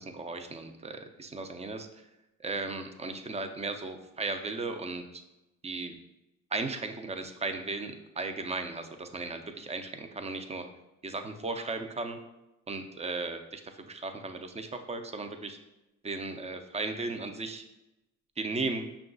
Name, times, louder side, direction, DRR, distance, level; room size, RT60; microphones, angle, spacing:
voice 1, 0.0-1.9 2.4-5.2 5.6-5.9 6.5-10.7 11.0-12.2 12.7-13.6 13.9-15.6 16.0-17.6 18.4-18.8, right 3 dB, 20° right, 6 dB, 0.5 m, -36 dB
5.6 x 2.4 x 3.8 m, 0.95 s
cardioid pair, 90°, 30 cm